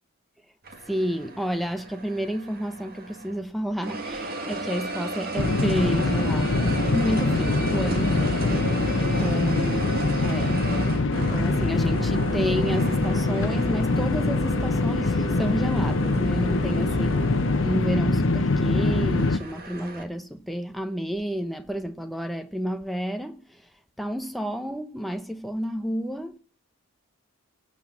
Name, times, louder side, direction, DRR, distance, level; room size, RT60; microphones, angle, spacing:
sound 1, 0.6-3.4 3.8-20.0, right 2 dB, 45° right, 1.8 m, -35 dB
voice 1, 0.9-8.5 9.0-10.7 11.1-23.6 24.0-26.4, equal, ahead, 0.9 m, -30 dB
sound 2, 5.4-19.4, left 2 dB, 60° left, 0.9 m, -24 dB
18.0 x 7.5 x 7.3 m
head